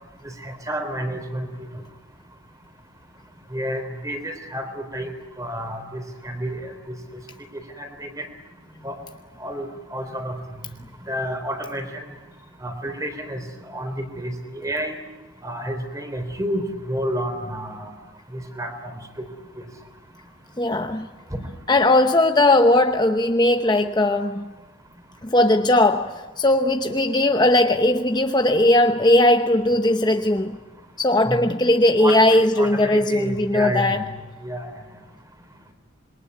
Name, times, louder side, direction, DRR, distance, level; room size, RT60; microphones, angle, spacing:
voice 1, 0.4-1.5 3.5-5.1 5.4-7.0 7.8-8.3 8.8-9.0 9.4-10.4 11.1-11.9 12.6-13.4 13.7-15.0 15.4-17.9 18.3-18.9 19.2-19.3 21.3-21.5 31.3-31.5 32.0-34.1 34.4-34.7, right 1 dB, 15° right, 3.5 m, -30 dB
voice 2, 20.6-21.1 21.7-24.5 25.2-30.6 31.0-34.1, left 1 dB, 20° left, 0.8 m, -18 dB
26.5 x 22.5 x 9.7 m
head